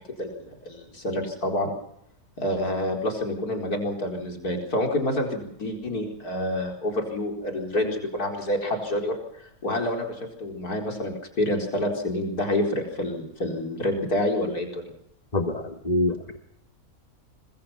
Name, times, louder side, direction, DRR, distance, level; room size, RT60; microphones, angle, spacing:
voice 1, 0.2-1.7 2.4-14.9, left 1 dB, 90° left, 3 dB, 4.8 m, -28 dB
voice 2, 15.3-16.4, left 1 dB, 30° left, 7 dB, 1.7 m, -26 dB
25.5 x 21.5 x 5.8 m, 0.71 s
omnidirectional pair, 1.6 m